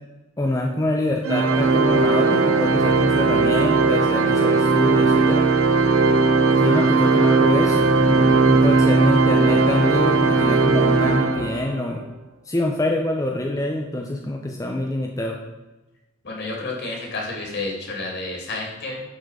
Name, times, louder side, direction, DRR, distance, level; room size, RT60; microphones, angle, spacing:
voice 1, 0.4-5.5 6.6-12.0 12.5-15.4, left 1 dB, 15° left, 1 dB, 0.6 m, -25 dB
Organ, 1.3-11.9, right 3 dB, 80° right, 0.7 m, -18 dB
voice 2, 6.6-7.5 16.2-19.0, left 2 dB, 55° left, -1 dB, 2.6 m, -31 dB
11.0 x 4.3 x 5.0 m, 1.1 s
head